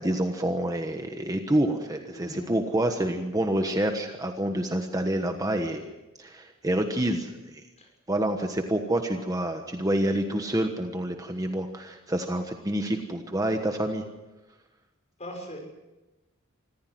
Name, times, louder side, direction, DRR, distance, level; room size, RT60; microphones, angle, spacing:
voice 1, 0.0-5.9 6.2-7.6 8.1-14.0, right 1 dB, 15° right, 5 dB, 1.3 m, -28 dB
voice 2, 2.1-2.5 7.8-7.9 15.2-15.7, equal, 30° left, 2 dB, 6.2 m, -39 dB
25.0 x 15.0 x 7.8 m, 1.1 s
head